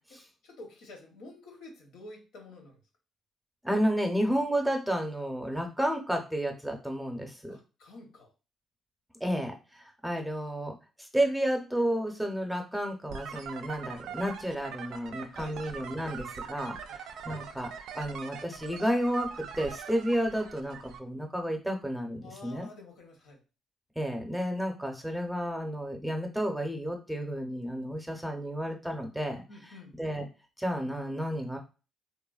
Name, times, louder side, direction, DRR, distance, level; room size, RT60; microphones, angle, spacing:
voice 1, 0.1-2.8 7.5-8.3 15.3-15.6 16.9-17.0 22.2-23.4 29.5-29.9, left 2 dB, 85° left, 2 dB, 0.8 m, -49 dB
voice 2, 3.6-7.5 9.2-10.7 11.1-17.7 17.9-22.7 24.0-29.4 30.0-30.2 30.6-31.6, equal, ahead, 2 dB, 0.6 m, -31 dB
sound 1, 13.1-21.0, right 7 dB, 80° right, 0.3 m, -43 dB
3.0 x 2.1 x 2.3 m, 0.32 s
cardioid pair, 90°, 0 cm